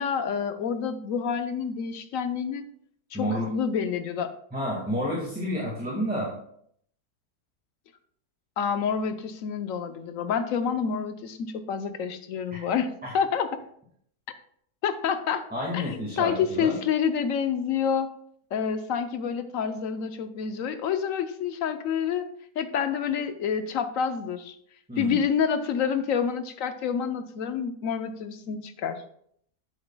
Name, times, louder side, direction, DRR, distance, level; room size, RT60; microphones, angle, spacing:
voice 1, 0.0-2.6 3.1-4.3 8.6-13.6 14.8-15.4 15.7-18.1 18.5-22.2 22.6-24.5 25.0-29.0, left 7 dB, 65° left, 9 dB, 1.0 m, -28 dB
voice 2, 3.1-3.5 4.5-6.3 12.5-12.6 13.0-13.1 15.5-16.8 24.9-25.2, equal, 5° right, -4 dB, 1.6 m, -30 dB
10.0 x 7.9 x 2.2 m, 0.66 s
omnidirectional pair, 1.6 m